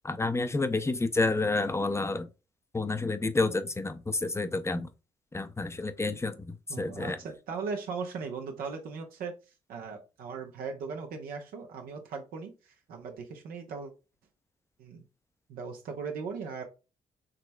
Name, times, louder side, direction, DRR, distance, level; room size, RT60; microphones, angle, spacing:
voice 1, 0.0-2.3 2.7-4.9 5.3-7.2, left 3 dB, 15° left, 0.6 m, -29 dB
voice 2, 6.7-9.3 9.7-13.9 14.8-15.0 15.5-16.6, right 5 dB, 70° right, 0.9 m, -38 dB
5.1 x 3.0 x 2.3 m
hypercardioid pair, 45°, 16 cm